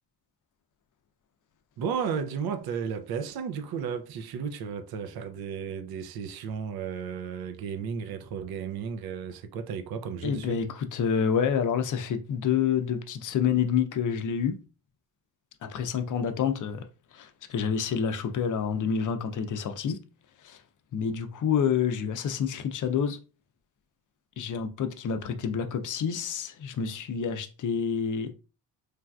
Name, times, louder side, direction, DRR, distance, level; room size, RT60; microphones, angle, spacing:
voice 1, 1.8-10.6, right 6 dB, 60° right, 0.5 m, -34 dB
voice 2, 10.2-14.6 15.6-16.8 17.1-20.0 20.4-20.6 20.9-23.2 24.4-28.3, left 7 dB, 50° left, 0.5 m, -28 dB
3.2 x 2.5 x 2.2 m
cardioid pair, 90°, 41 cm